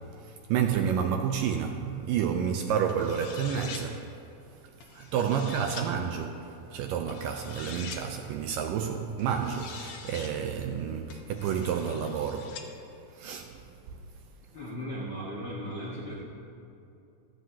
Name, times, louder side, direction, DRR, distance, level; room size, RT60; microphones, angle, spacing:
voice 1, 0.2-4.1 4.9-12.7 13.1-13.6, right 7 dB, 80° right, 2.0 m, -30 dB
sound 1, 2.9-3.9 4.8-5.9 7.1-8.0 9.2-10.3 11.1-12.7, left 6 dB, 70° left, 1.7 m, -44 dB
voice 2, 14.5-16.2, equal, 50° left, 1.3 m, -36 dB
15.0 x 14.0 x 2.8 m
omnidirectional pair, 4.3 m